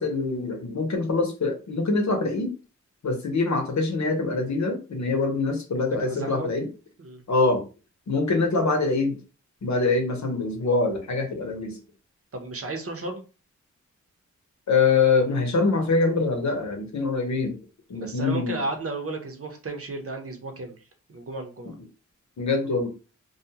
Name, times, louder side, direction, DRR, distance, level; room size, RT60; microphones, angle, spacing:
voice 1, 0.0-2.5 3.0-6.7 7.3-7.6 8.1-9.2 9.6-11.8 14.7-17.6 17.9-18.6 22.4-22.9, left 3 dB, 65° left, 4 dB, 0.9 m, -24 dB
voice 2, 5.8-6.5 7.0-7.2 12.3-13.2 17.9-20.8 21.1-21.8, right 2 dB, 50° right, 3 dB, 0.8 m, -34 dB
2.4 x 2.3 x 2.8 m, 0.32 s
cardioid pair, 60°, 30 cm